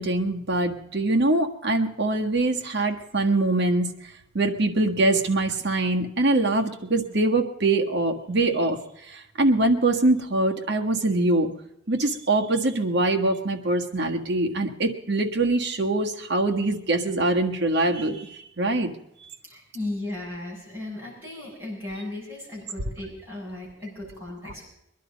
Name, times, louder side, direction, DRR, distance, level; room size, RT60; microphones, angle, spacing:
voice 1, 0.0-3.9 4.3-8.8 9.1-11.5 11.9-18.9, right 2 dB, 55° right, 3 dB, 1.6 m, -23 dB
voice 2, 19.4-24.7, left 2 dB, 10° right, -6 dB, 6.9 m, -36 dB
22.5 x 11.5 x 5.2 m, 0.82 s
head